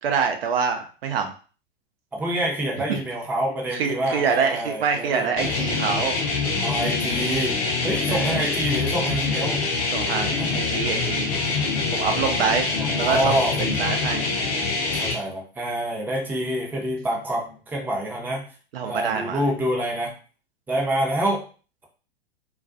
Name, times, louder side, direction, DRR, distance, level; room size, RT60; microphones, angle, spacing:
voice 1, 0.0-1.3 2.9-3.0 3.7-6.2 8.1-8.4 9.9-11.3 11.9-12.6 12.9-14.3 18.7-19.4, right 6 dB, 70° right, 4 dB, 0.6 m, -25 dB
voice 2, 2.1-5.8 6.6-9.6 10.4-10.5 12.6-13.7 14.9-18.4 18.8-20.1 20.7-21.4, right 1 dB, 5° right, -2 dB, 0.6 m, -27 dB
sound 1, 5.4-15.1, left 4 dB, 45° left, 0.8 m, -25 dB
2.3 x 2.2 x 2.6 m, 0.37 s
hypercardioid pair, 105°, 31 cm